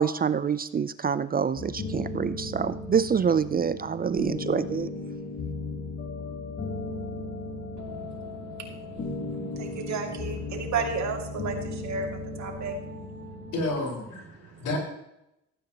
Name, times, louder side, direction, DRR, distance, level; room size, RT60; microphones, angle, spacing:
voice 1, 0.0-4.9, right 7 dB, 30° right, 14 dB, 0.5 m, -26 dB
sound 1, 1.5-13.7, left 3 dB, 45° left, 2.8 m, -36 dB
voice 2, 7.8-13.5 14.3-14.7, right 4 dB, 65° right, 2 dB, 2.5 m, -34 dB
voice 3, 13.5-14.8, left 2 dB, 85° left, -2 dB, 4.9 m, -31 dB
15.5 x 9.5 x 3.0 m, 0.83 s
cardioid pair, 90°, 30 cm